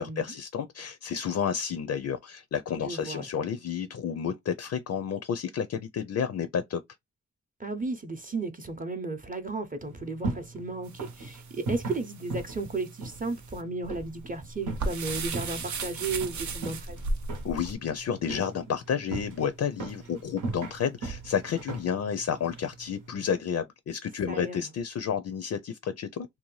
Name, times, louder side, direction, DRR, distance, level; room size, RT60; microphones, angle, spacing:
voice 1, 0.0-6.8 17.4-26.3, left 7 dB, 60° left, 0.4 m, -31 dB
voice 2, 2.8-3.3 7.6-17.1 24.3-24.6, right 3 dB, 25° right, 0.6 m, -34 dB
sound 1, 9.8-23.3, right 3 dB, 85° right, 0.9 m, -39 dB
sound 2, 10.9-17.7, right 3 dB, 65° right, 0.6 m, -36 dB
2.7 x 2.1 x 3.0 m
cardioid pair, 70°, 31 cm